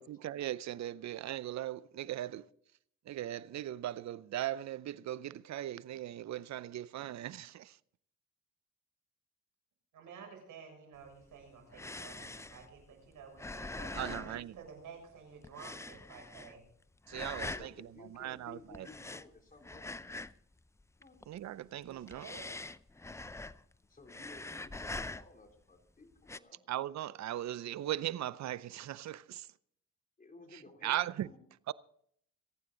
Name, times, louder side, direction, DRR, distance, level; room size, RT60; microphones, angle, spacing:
voice 1, 0.0-2.5 3.0-7.8 13.9-14.6 17.1-18.9 21.3-22.3 26.7-29.5 30.5-31.3 31.7-31.8, right 13 dB, 60° right, 0.7 m, -39 dB
voice 2, 9.9-16.7 17.5-17.6 21.8-22.5, right 6 dB, 75° right, 6.9 m, -52 dB
sound 1, 11.1-15.1 15.4-16.7 17.1-17.7 18.7-20.5 20.8-21.4 21.9-23.8 24.0-25.5 26.2-26.4, left 2 dB, 10° left, 0.5 m, -44 dB
voice 3, 17.4-20.0 21.0-21.2 23.9-26.6 30.2-31.4, left 3 dB, 25° left, 3.4 m, -55 dB
27.0 x 9.5 x 3.9 m
cardioid pair, 85°, 31 cm